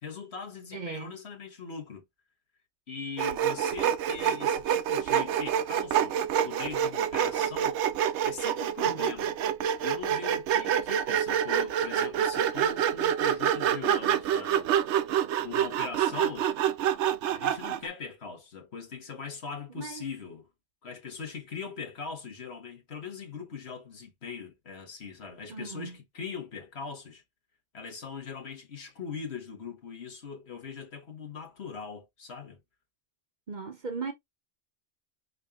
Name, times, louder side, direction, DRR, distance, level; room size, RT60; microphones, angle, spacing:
voice 1, 0.0-2.0 2.9-7.8 8.2-9.4 9.8-14.7 15.4-16.5 17.3-20.5 20.8-27.2 27.7-32.6, left 5 dB, 65° left, 1.6 m, -41 dB
voice 2, 0.7-1.1 8.8-9.1 19.8-20.0 25.5-26.0 33.5-34.1, right 5 dB, 45° right, 0.8 m, -37 dB
Sawing, 3.2-17.9, right 9 dB, 80° right, 0.9 m, -27 dB
5.3 x 3.7 x 2.3 m
omnidirectional pair, 1.2 m